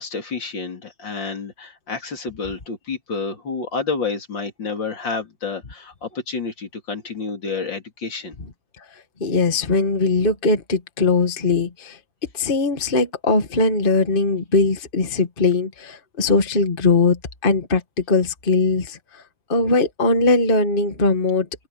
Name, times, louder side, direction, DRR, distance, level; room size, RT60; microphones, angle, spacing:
voice 1, 0.0-8.4, left 4 dB, 75° left, 3.9 m, -29 dB
voice 2, 9.2-12.0 12.3-17.8 18.1-19.2 19.5-21.5, left 3 dB, 30° left, 1.8 m, -20 dB
open air
omnidirectional pair, 2.0 m